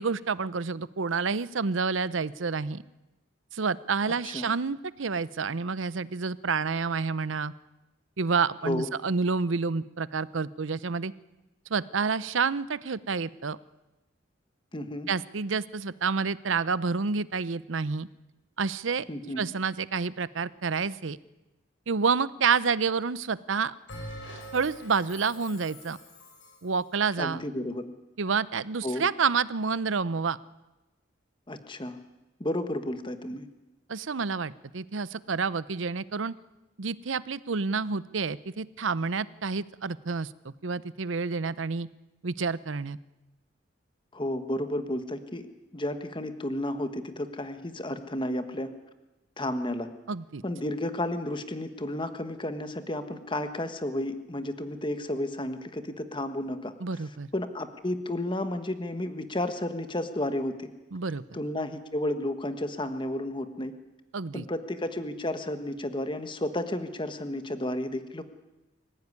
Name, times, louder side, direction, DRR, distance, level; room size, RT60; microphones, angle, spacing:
voice 1, 0.0-2.8 3.5-7.5 8.2-11.1 11.7-13.6 15.1-18.1 18.6-19.1 19.4-21.2 21.9-23.7 24.5-26.0 26.6-27.4 28.2-30.4 33.9-36.3 36.8-41.9 42.2-43.0 50.1-50.4 56.8-57.3 60.9-61.2 64.1-64.4, right 5 dB, 80° right, 18 dB, 0.7 m, -29 dB
voice 2, 14.7-15.1 19.1-19.4 27.2-27.8 28.8-29.0 31.5-32.0 32.4-33.5 44.1-45.5 45.7-48.7 49.4-49.9 50.4-56.7 57.3-60.7 61.3-63.7 64.3-68.2, left 1 dB, 25° left, 9 dB, 1.4 m, -32 dB
Bell, 23.9-26.7, equal, 85° left, 5.3 m, -44 dB
24.5 x 15.5 x 9.7 m, 1.0 s
head